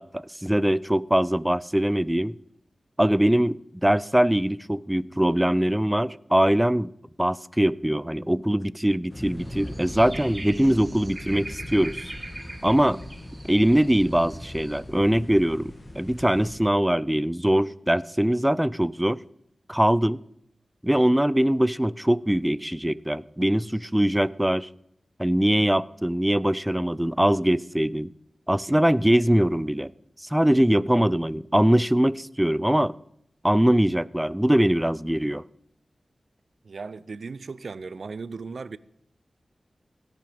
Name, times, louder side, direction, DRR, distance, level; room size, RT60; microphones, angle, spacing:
voice 1, 0.0-2.3 3.0-6.9 7.2-12.1 12.6-13.0 13.5-19.2 19.7-20.2 20.8-24.7 25.2-28.1 28.5-29.9 30.2-33.0 33.4-35.4, right 1 dB, 10° right, 0.4 m, -22 dB
sound 1, 9.1-16.6, left 1 dB, 40° left, 1.9 m, -40 dB
sound 2, 9.4-14.8, right 2 dB, 30° right, 2.0 m, -43 dB
voice 2, 36.6-38.8, right 4 dB, 75° right, 0.4 m, -36 dB
17.0 x 5.9 x 5.1 m
cardioid pair, 45°, 0 cm